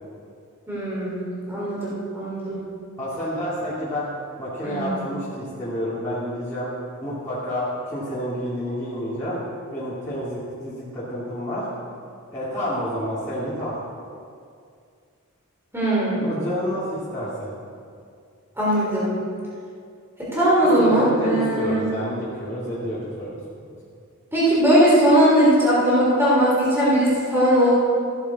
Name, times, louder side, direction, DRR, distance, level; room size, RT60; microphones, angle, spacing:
voice 1, 0.7-2.6 4.6-4.9 15.7-16.2 18.6-19.1 20.2-21.9 24.3-27.7, right 1 dB, 10° right, -8 dB, 3.7 m, -19 dB
voice 2, 3.0-4.1 4.4-6.7 7.0-11.7 12.3-13.8 16.2-17.5 20.6-23.3 23.6-23.7, equal, 10° left, -12 dB, 2.6 m, -29 dB
15.0 x 10.0 x 4.2 m, 2.3 s
head